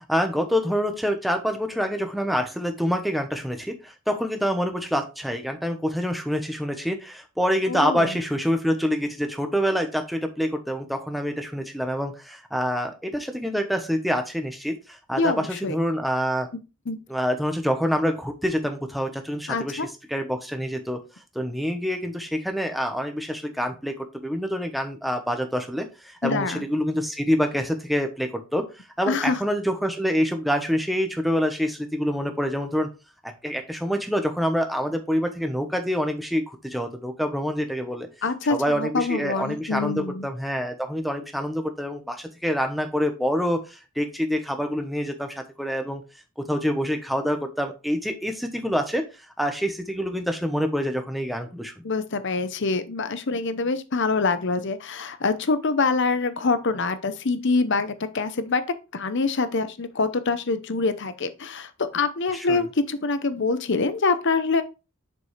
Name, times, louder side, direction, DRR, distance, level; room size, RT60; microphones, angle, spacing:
voice 1, 0.1-16.5 17.1-19.8 20.1-21.0 21.3-28.6 29.0-32.9 33.2-38.1 38.5-46.0 46.5-51.8 62.3-62.6, equal, ahead, 1.0 m, -26 dB
voice 2, 7.7-8.1 15.1-15.7 16.9-17.0 19.5-19.9 26.2-26.6 29.1-29.4 38.2-40.3 51.8-58.6 58.9-64.6, left 4 dB, 55° left, 0.8 m, -25 dB
7.1 x 5.3 x 3.2 m
head